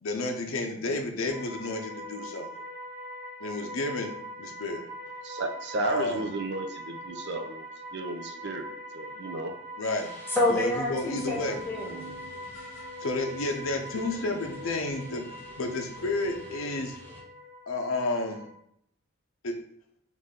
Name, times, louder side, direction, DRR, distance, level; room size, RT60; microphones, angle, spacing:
voice 1, 0.0-2.5 3.4-4.9 5.8-6.3 9.8-10.1 10.5-11.6 13.0-15.3 15.6-17.0 17.7-18.4 19.4-19.6, left 2 dB, 70° left, 3 dB, 0.6 m, -31 dB
sound 1, 1.3-18.5, equal, 5° right, 1.3 m, -42 dB
voice 2, 5.2-9.6, right 2 dB, 55° right, 6 dB, 0.6 m, -34 dB
voice 3, 9.9-13.0 15.0-15.4 16.6-17.2, left 1 dB, 10° left, -4 dB, 0.8 m, -31 dB
sound 2, 10.7-17.2, right 3 dB, 25° left, 1.7 m, -50 dB
4.0 x 3.2 x 3.6 m, 0.72 s
head